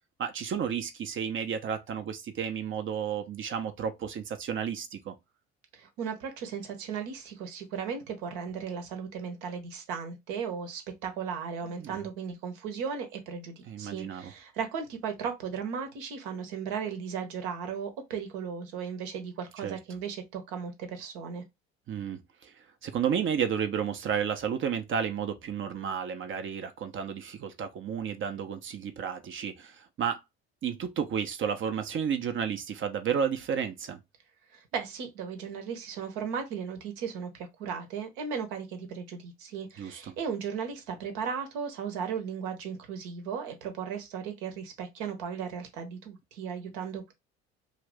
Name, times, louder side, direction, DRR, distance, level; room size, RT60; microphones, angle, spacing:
voice 1, 0.2-5.1 11.7-12.0 13.7-14.3 19.6-19.8 21.9-22.5 22.8-30.2 30.6-34.0 39.8-40.1, right 7 dB, 35° right, 0.7 m, -32 dB
voice 2, 5.7-21.4 34.5-47.1, right 6 dB, 65° right, 1.0 m, -36 dB
2.8 x 2.6 x 3.3 m
figure-of-eight pair, 60°, 34 cm